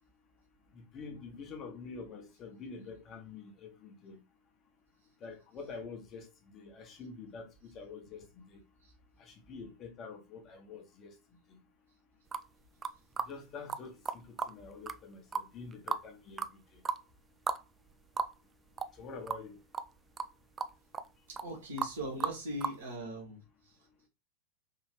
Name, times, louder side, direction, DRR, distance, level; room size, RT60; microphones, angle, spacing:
voice 1, 0.7-4.2 5.2-8.6 9.2-11.1 11.5-11.6 13.3-16.8 19.0-19.6, left 4 dB, 30° left, 1.2 m, -47 dB
sound 1, 12.3-12.5 12.8-13.3 13.7-13.8 14.1-14.5 14.9-15.0 15.3-16.1 16.4-16.5 16.9-17.0 17.5-17.6 17.9-18.0 18.2-18.3 18.8-19.0 19.3-19.4 19.7-19.9 20.2-20.3 20.6-21.1 21.3-21.5 21.8-21.9 22.2-22.8, right 5 dB, 20° right, 0.3 m, -35 dB
voice 2, 21.4-23.4, equal, 65° right, 1.4 m, -39 dB
4.7 x 3.1 x 3.3 m
figure-of-eight pair, 90°, 0 cm